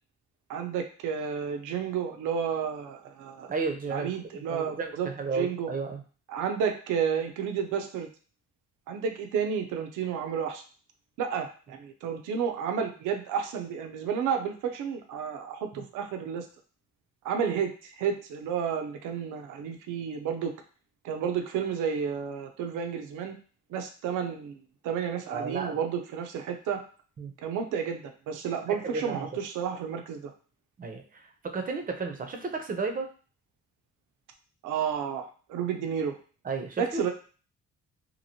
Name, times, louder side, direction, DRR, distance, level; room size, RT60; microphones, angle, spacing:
voice 1, 0.5-3.5 3.9-5.7 6.3-8.1 8.9-10.6 11.2-16.5 17.2-20.5 21.0-23.4 23.7-24.6 24.8-26.8 27.4-30.3 34.6-36.2 36.8-37.1, right 7 dB, 85° right, 5 dB, 0.6 m, -31 dB
voice 2, 3.5-6.0 15.8-15.9 25.3-25.8 27.2-27.3 28.7-29.2 30.8-33.1 36.4-37.0, right 4 dB, 30° right, 4 dB, 0.6 m, -33 dB
2.9 x 2.6 x 2.7 m, 0.39 s
cardioid pair, 90°, 30 cm